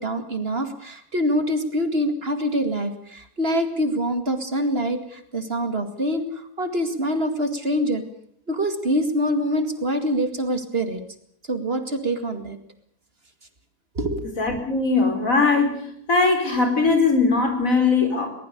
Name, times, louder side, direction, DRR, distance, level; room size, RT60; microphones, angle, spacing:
voice 1, 0.0-8.0 8.5-11.0 11.5-12.6 13.9-14.2, equal, 45° right, 7 dB, 2.6 m, -25 dB
voice 2, 14.4-15.8 16.1-18.3, left 4 dB, 70° left, 5 dB, 5.2 m, -20 dB
22.5 x 20.5 x 6.8 m, 0.66 s
omnidirectional pair, 1.5 m